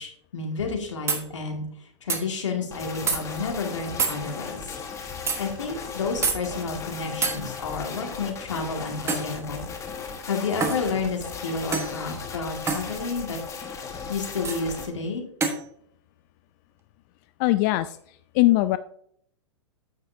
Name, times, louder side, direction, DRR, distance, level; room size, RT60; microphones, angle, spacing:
voice 1, 0.0-4.8 5.4-9.7 9.9-13.4 13.8-15.2, left 4 dB, 80° left, 3 dB, 2.1 m, -31 dB
sound 1, 1.1-1.2 2.1-2.2 3.1-3.2 4.0-4.2 5.3-5.4 6.2-6.4 7.2-7.4 9.1-9.3 10.6-10.8 11.7-11.9 12.7-12.9 14.4-14.6 15.4-15.6, right 4 dB, 15° right, 1.3 m, -25 dB
sound 2, 2.7-14.9, left 5 dB, 20° left, 1.4 m, -37 dB
voice 2, 17.4-18.0 18.3-18.8, left 18 dB, 40° left, 13 dB, 0.4 m, -20 dB
8.8 x 7.5 x 2.7 m, 0.65 s
hypercardioid pair, 110°, 15 cm